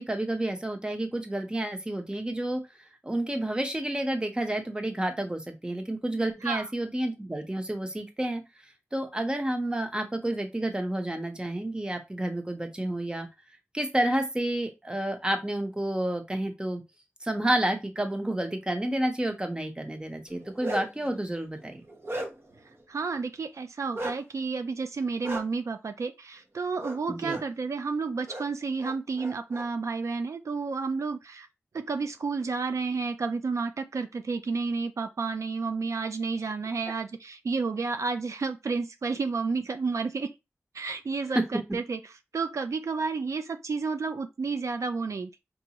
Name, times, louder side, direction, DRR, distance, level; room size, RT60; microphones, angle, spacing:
voice 1, 0.0-2.6 3.0-8.4 8.9-13.3 13.7-16.8 17.2-21.8 27.1-27.4 41.3-41.4, right 1 dB, 15° right, 0.9 m, -30 dB
Bark, 20.3-21.1 21.6-22.6 23.9-24.2 25.2-25.4 26.8-27.0 27.2-27.4 28.3-28.4 28.8-29.7, right 1 dB, 55° right, 0.9 m, -35 dB
voice 2, 22.9-31.5 31.7-40.3 40.7-42.0 42.3-45.4, right 4 dB, 80° right, 0.4 m, -31 dB
4.7 x 2.6 x 2.9 m
wide cardioid pair, 80°, 5 cm